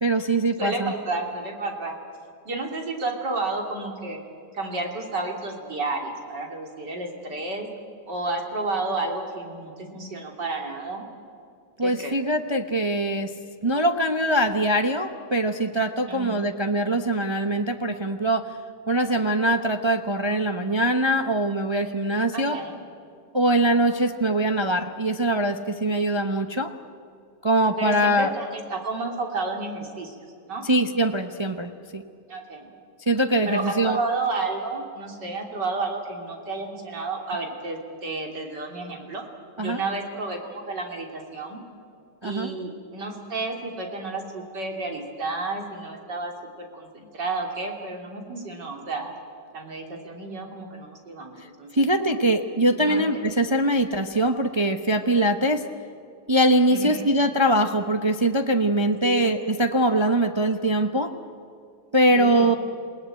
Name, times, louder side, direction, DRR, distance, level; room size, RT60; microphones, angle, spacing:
voice 1, 0.0-0.9 11.8-13.3 13.6-18.5 18.9-22.6 23.3-26.7 27.4-28.3 30.6-32.0 33.1-34.0 39.6-39.8 42.2-42.5 51.7-55.6 56.3-61.1 61.9-62.5, right 1 dB, 25° right, 5 dB, 0.7 m, -22 dB
voice 2, 0.6-2.0 2.5-4.2 4.5-7.7 8.1-11.1 11.8-12.2 16.1-16.5 22.3-22.8 27.8-30.6 32.3-32.7 33.5-39.2 39.6-41.6 42.2-46.3 46.6-49.1 49.5-51.9 52.8-53.2 56.7-57.1 59.0-59.3 62.1-62.6, right 3 dB, 80° right, 2 dB, 3.6 m, -31 dB
28.5 x 18.5 x 9.1 m, 2.4 s
omnidirectional pair, 1.8 m